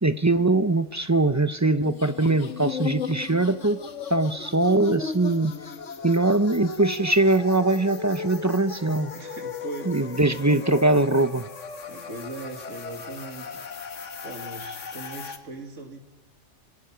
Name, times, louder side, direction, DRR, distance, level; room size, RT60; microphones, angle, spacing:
voice 1, 0.0-3.8 4.1-5.6 6.0-9.1 9.9-11.5, right 2 dB, 20° right, 11 dB, 0.6 m, -22 dB
sound 1, 1.8-15.4, left 5 dB, 80° left, 1.6 m, -36 dB
voice 2, 9.1-10.4 11.8-13.7 14.2-16.0, right 3 dB, 90° right, 3 dB, 2.4 m, -39 dB
26.5 x 22.0 x 5.8 m, 0.99 s
omnidirectional pair, 1.3 m